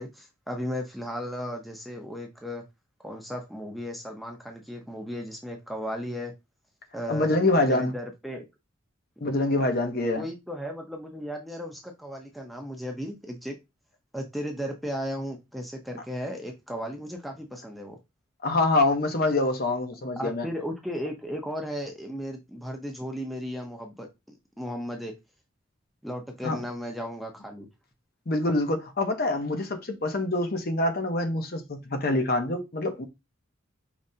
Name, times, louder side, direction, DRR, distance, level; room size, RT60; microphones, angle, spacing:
voice 1, 0.0-2.6 3.0-6.3 6.9-7.3 7.7-8.5 10.2-13.6 14.1-18.0 20.2-25.2 26.0-27.7, equal, ahead, 0.7 m, -35 dB
voice 2, 7.1-7.9 9.2-10.3 18.4-20.5 26.4-26.6 28.3-33.1, left 2 dB, 50° left, 0.8 m, -25 dB
5.0 x 3.2 x 2.7 m
head